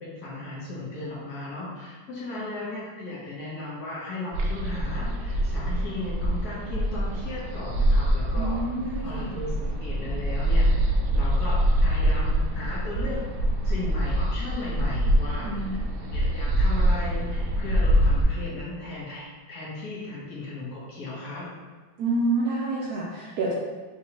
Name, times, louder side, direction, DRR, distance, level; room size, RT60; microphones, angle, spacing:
voice 1, 0.0-8.6 9.0-13.2 13.6-15.8 16.1-21.5, left 2 dB, 55° left, -6 dB, 1.4 m, -36 dB
sound 1, 4.3-18.2, equal, 90° right, 0.7 m, -25 dB
voice 2, 8.4-9.3 15.4-15.8 22.0-23.5, right 2 dB, 70° right, -5 dB, 1.0 m, -28 dB
4.8 x 3.0 x 2.9 m, 1.4 s
omnidirectional pair, 2.1 m